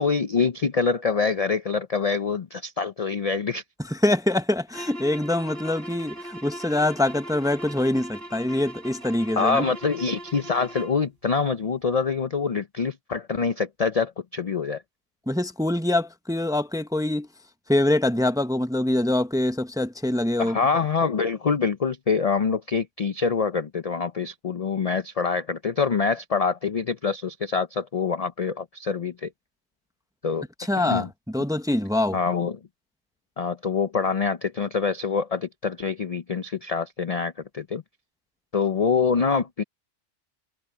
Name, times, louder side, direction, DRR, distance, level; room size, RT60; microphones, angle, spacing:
voice 1, 0.0-3.6 9.4-14.8 20.4-29.3 30.2-30.4 30.8-31.1 32.1-32.6 33.4-37.8 38.5-39.6, left 5 dB, 40° left, 0.5 m, -25 dB
voice 2, 3.9-9.7 15.3-17.3 17.7-20.6 30.7-32.2, left 1 dB, 5° right, 0.7 m, -24 dB
sound 1, 4.7-11.0, right 1 dB, 55° right, 3.5 m, -40 dB
omnidirectional pair, 1.2 m